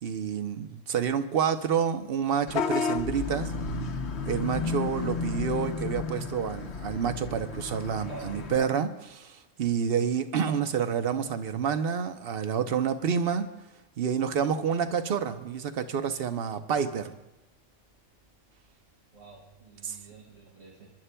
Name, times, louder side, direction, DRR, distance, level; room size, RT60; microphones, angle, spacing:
voice 1, 0.0-3.5 4.3-13.5 14.0-17.2 19.8-20.0, right 7 dB, 55° right, 9 dB, 0.9 m, -28 dB
Vehicle horn car horn honking / Bus, 2.5-8.6, left 4 dB, 60° left, 1.1 m, -32 dB
voice 2, 8.1-8.6 19.1-20.9, right 4 dB, 75° right, -3 dB, 3.6 m, -47 dB
30.0 x 11.0 x 2.2 m, 1.0 s
omnidirectional pair, 1.3 m